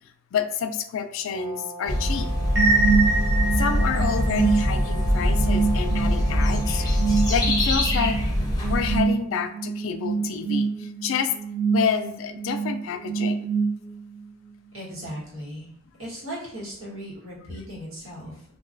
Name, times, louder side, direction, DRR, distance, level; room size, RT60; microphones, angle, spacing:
voice 1, 0.3-2.3 3.6-6.9 7.3-8.2 8.7-11.3 11.7-13.5, left 7 dB, 75° left, 9 dB, 0.3 m, -28 dB
Brass instrument, 1.3-7.5, right 2 dB, 15° right, 0.9 m, -39 dB
sound 1, 1.9-9.0, left 1 dB, 20° left, 0.5 m, -23 dB
sound 2, 2.6-14.2, right 4 dB, 65° right, 0.6 m, -26 dB
voice 2, 14.7-15.7 16.0-18.4, equal, 85° right, -7 dB, 1.3 m, -37 dB
2.9 x 2.2 x 2.5 m, 0.71 s
head